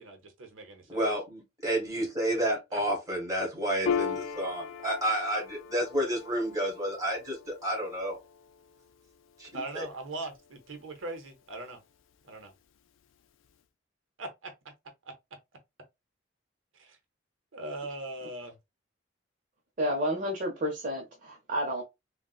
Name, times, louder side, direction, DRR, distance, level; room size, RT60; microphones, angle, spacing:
voice 1, 0.0-0.9 2.7-2.8 9.5-11.8 12.2-12.5 14.2-14.5 16.7-17.0 17.5-18.6, right 2 dB, 90° right, 0.8 m, -40 dB
voice 2, 0.9-8.2 9.4-9.8, right 1 dB, 20° right, 1.6 m, -30 dB
Piano, 3.9-10.8, left 6 dB, 85° left, 0.4 m, -38 dB
voice 3, 19.8-21.8, equal, 45° right, 0.7 m, -30 dB
3.8 x 2.2 x 2.3 m
head